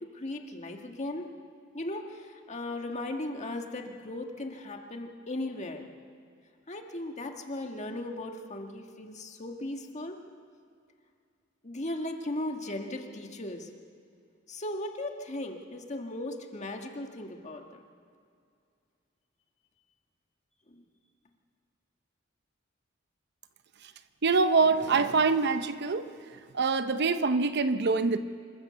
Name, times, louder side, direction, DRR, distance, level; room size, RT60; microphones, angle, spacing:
voice 1, 0.0-1.3 1.7-5.9 6.7-10.2 11.6-13.7 14.5-17.8 20.7-20.9, left 1 dB, 35° left, 3 dB, 1.8 m, -37 dB
voice 2, 24.2-26.1 26.5-28.2, right 4 dB, 55° right, 10 dB, 0.8 m, -25 dB
26.0 x 14.5 x 7.0 m, 2.3 s
head